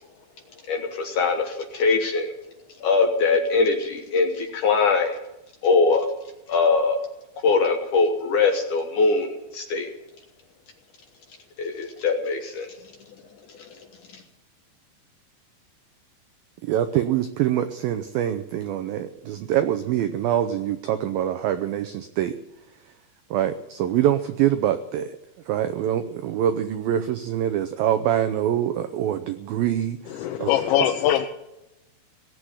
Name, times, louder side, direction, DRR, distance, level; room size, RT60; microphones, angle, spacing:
voice 1, 0.7-2.3 2.8-5.2 5.6-6.1 6.5-7.0 7.4-9.9 11.6-12.7, left 4 dB, 65° left, 4 dB, 2.1 m, -22 dB
voice 2, 16.7-22.3 23.3-25.1 25.5-30.5, right 11 dB, 85° right, 9 dB, 2.1 m, -24 dB
voice 3, 30.1-31.3, left 12 dB, 85° left, 4 dB, 3.1 m, -22 dB
19.0 x 7.8 x 9.9 m, 0.92 s
omnidirectional pair, 5.1 m